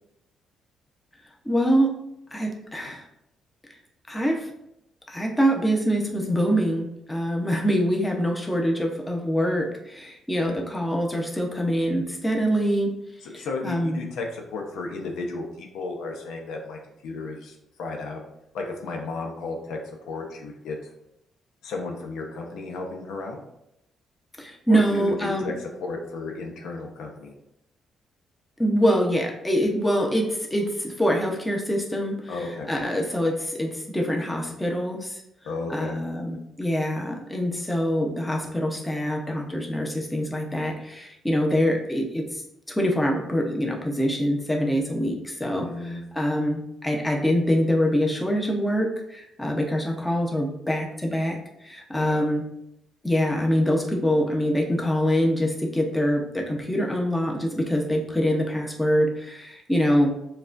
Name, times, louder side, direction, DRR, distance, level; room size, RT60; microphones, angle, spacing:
voice 1, 1.4-2.0 2.3-3.1 4.1-4.5 5.1-12.9 13.3-14.0 24.4-25.5 28.6-32.4 32.7-35.2 35.7-42.4 42.7-52.4 53.0-60.2, equal, 10° left, 0 dB, 0.8 m, -24 dB
voice 2, 10.3-10.6 13.2-18.2 18.5-20.8 21.6-23.4 24.7-27.3 32.3-32.7 35.4-36.0 45.5-46.0 51.9-52.2, left 3 dB, 80° left, 1 dB, 0.7 m, -34 dB
6.6 x 2.4 x 2.5 m, 0.82 s
cardioid pair, 90°, 0 cm